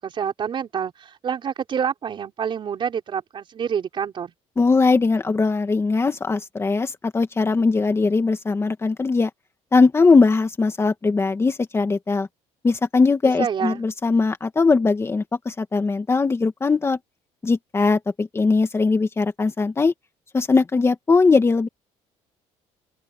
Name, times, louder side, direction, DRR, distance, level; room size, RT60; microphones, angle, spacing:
voice 1, 0.0-4.3 13.4-13.8, right 7 dB, 35° right, 4.7 m, -27 dB
voice 2, 4.6-9.3 9.7-12.3 12.6-17.0 17.4-19.9 20.3-21.7, left 4 dB, 20° left, 1.8 m, -20 dB
open air
cardioid pair, 140°, 14 cm